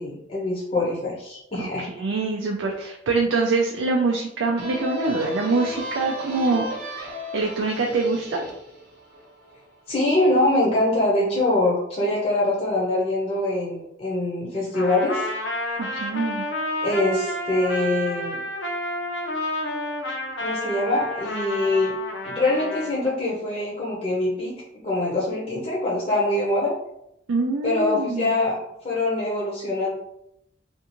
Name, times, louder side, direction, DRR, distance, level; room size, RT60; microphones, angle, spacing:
voice 1, 0.0-1.9 9.9-15.3 16.8-18.4 20.4-21.9 22.2-24.5 24.8-26.7 27.6-29.9, left 2 dB, 35° left, -6 dB, 0.6 m, -24 dB
voice 2, 1.6-8.4 15.8-16.4 27.3-28.4, right 3 dB, 90° right, 0 dB, 0.4 m, -25 dB
sound 1, 4.6-10.0, left 1 dB, 55° right, 0.7 m, -35 dB
Trumpet, 14.7-22.9, left 1 dB, 70° left, 0.6 m, -30 dB
2.5 x 2.3 x 2.9 m, 0.79 s
head